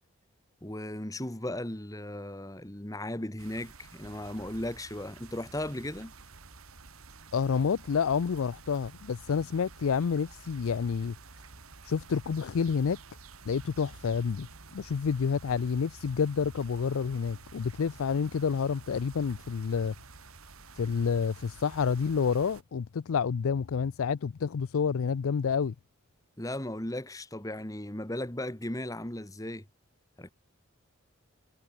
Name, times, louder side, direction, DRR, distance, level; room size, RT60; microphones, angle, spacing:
voice 1, 0.6-6.1 26.4-29.7 30.2-30.3, left 1 dB, 15° left, 1.6 m, -36 dB
sound 1, 3.4-22.6, right 4 dB, 85° right, 2.1 m, -51 dB
voice 2, 7.3-11.2 11.9-13.0 13.5-14.5 14.7-19.9 20.8-25.7, left 6 dB, 75° left, 0.4 m, -29 dB
head